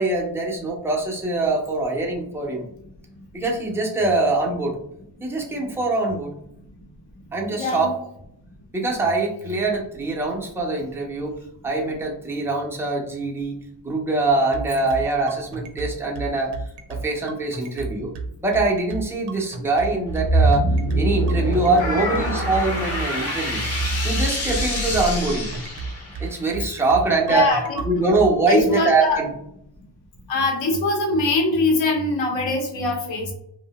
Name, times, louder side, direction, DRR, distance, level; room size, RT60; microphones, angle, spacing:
voice 1, 0.0-2.6 3.3-4.8 5.2-6.3 7.3-8.0 8.7-11.4 11.6-13.6 13.8-16.6 16.9-18.1 18.4-20.7 21.0-23.6 24.0-25.5 26.2-27.5 27.8-29.3, right 3 dB, 5° right, -2 dB, 0.3 m, -23 dB
voice 2, 7.5-7.9 21.8-22.3 23.9-24.0 27.3-27.8 28.5-29.2 30.3-33.3, left 2 dB, 70° left, 1 dB, 0.8 m, -22 dB
sound 1, 14.3-28.3, right 4 dB, 60° right, 0.5 m, -32 dB
sound 2, 20.1-26.4, right 1 dB, 35° left, 0.6 m, -24 dB
2.7 x 2.0 x 2.8 m, 0.76 s
wide cardioid pair, 175°, 46 cm